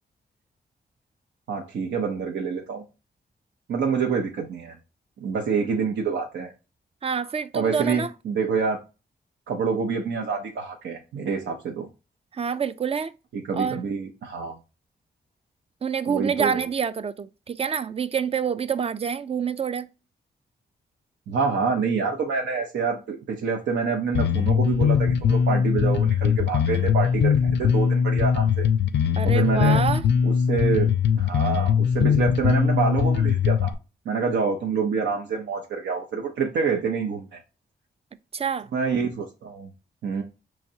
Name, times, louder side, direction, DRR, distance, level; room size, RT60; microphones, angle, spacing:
voice 1, 1.5-2.8 3.7-4.8 5.2-6.5 7.5-8.8 9.5-11.9 13.3-14.5 16.1-16.7 21.3-28.7 29.2-29.8 30.2-30.9 31.2-33.7 34.1-37.4 38.7-39.7 40.0-40.2, right 5 dB, 85° right, 0.7 m, -27 dB
voice 2, 7.0-8.1 12.3-13.1 13.6-13.8 15.8-19.9 29.2-30.1 38.3-38.7, right 7 dB, 35° right, 0.4 m, -27 dB
Bass guitar, 24.1-33.7, left 7 dB, 85° left, 0.5 m, -21 dB
4.8 x 3.2 x 2.6 m
cardioid pair, 85°, 18 cm